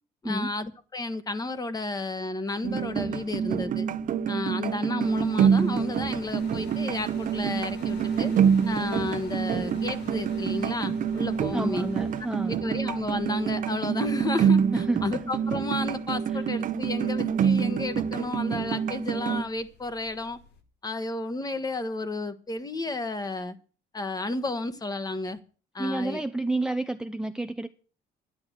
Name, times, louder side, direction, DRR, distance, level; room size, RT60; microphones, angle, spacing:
voice 1, 0.2-3.9 4.3-8.3 8.7-11.9 12.5-20.4 20.8-23.6 23.9-25.4 25.7-26.2, left 2 dB, 20° left, 13 dB, 1.4 m, -32 dB
sound 1, 2.6-19.4, right 7 dB, 50° right, 0.8 m, -26 dB
sound 2, 5.0-20.6, left 5 dB, 85° left, 2.1 m, -48 dB
voice 2, 11.5-12.6 14.7-15.3 16.3-16.4 25.8-27.7, right 2 dB, 5° right, 7 dB, 0.6 m, -30 dB
10.5 x 10.5 x 6.4 m, 0.40 s
cardioid pair, 110°, 17 cm